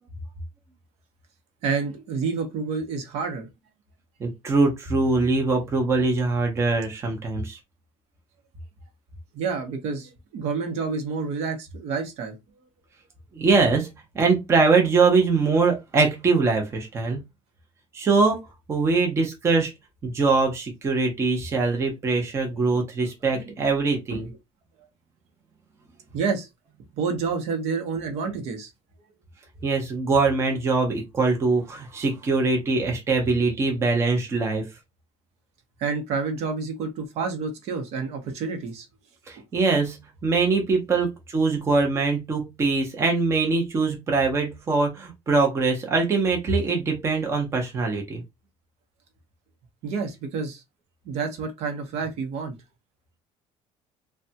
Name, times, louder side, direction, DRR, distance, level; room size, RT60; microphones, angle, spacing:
voice 1, 1.6-3.5 9.3-12.4 22.5-22.8 23.3-23.5 24.1-24.3 24.8-24.9 26.1-26.5 26.9-28.7 35.8-38.9 39.3-39.5 49.8-50.6 51.0-52.6, right 5 dB, 60° right, 0.9 m, -29 dB
voice 2, 4.2-7.6 13.3-13.9 14.1-17.2 17.9-18.4 18.7-19.7 20.0-24.3 29.6-34.7 39.3-48.2, right 4 dB, 25° right, 0.7 m, -22 dB
3.3 x 2.2 x 2.7 m
cardioid pair, 170°, 12 cm